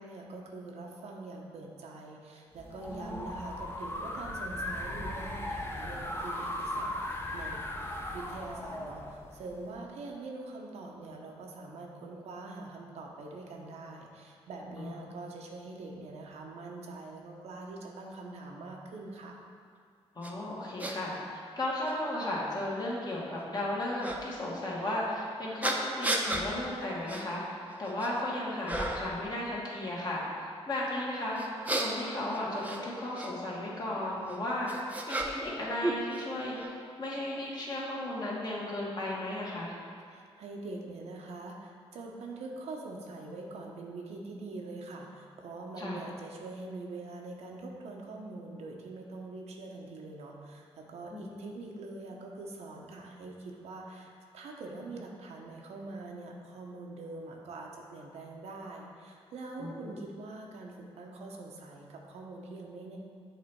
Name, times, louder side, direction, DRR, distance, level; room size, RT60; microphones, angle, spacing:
voice 1, 0.0-7.6 8.1-19.4 40.1-63.0, right 2 dB, 85° right, 0 dB, 0.8 m, -44 dB
sound 1, 2.6-9.7, left 1 dB, 20° left, 0.7 m, -38 dB
voice 2, 14.8-15.1 20.1-39.7 45.8-46.0 51.1-51.4 59.6-59.9, left 1 dB, 40° left, -5 dB, 1.6 m, -35 dB
sound 2, 20.2-20.3 20.8-20.9 21.8-21.9 24.0-24.2 25.6-26.5 27.1-27.2 27.7-28.2 28.7-29.1 31.4-33.3 34.3-35.6 35.8-36.7, right 1 dB, 15° right, 0.6 m, -33 dB
8.0 x 3.3 x 4.6 m, 2.2 s
cardioid pair, 85°, 11 cm